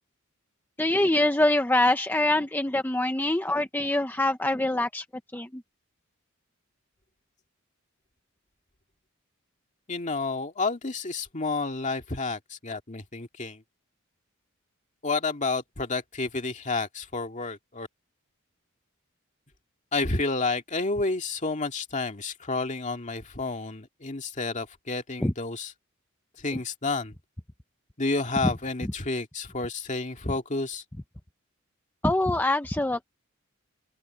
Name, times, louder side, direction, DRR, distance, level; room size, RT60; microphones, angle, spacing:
voice 1, 0.8-5.0 5.3-5.6 25.2-25.3 28.4-28.5 32.0-33.1, left 1 dB, 10° left, 0.7 m, -24 dB
voice 2, 9.9-13.6 15.0-17.9 19.9-25.7 26.4-27.2 28.0-30.8, left 3 dB, 35° left, 2.2 m, -30 dB
open air
head